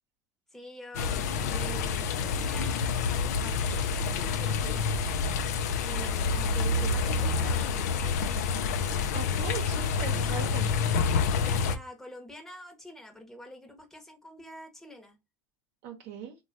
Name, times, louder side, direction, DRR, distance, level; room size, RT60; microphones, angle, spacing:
voice 1, 0.5-4.9 5.8-8.6 11.1-15.2, left 1 dB, 5° left, 0.9 m, -46 dB
sound 1, 0.9-11.8, left 5 dB, 90° left, 0.4 m, -28 dB
voice 2, 9.1-10.7 15.8-16.4, right 7 dB, 65° right, 0.7 m, -39 dB
3.1 x 2.2 x 2.6 m
supercardioid pair, 115°, 9 cm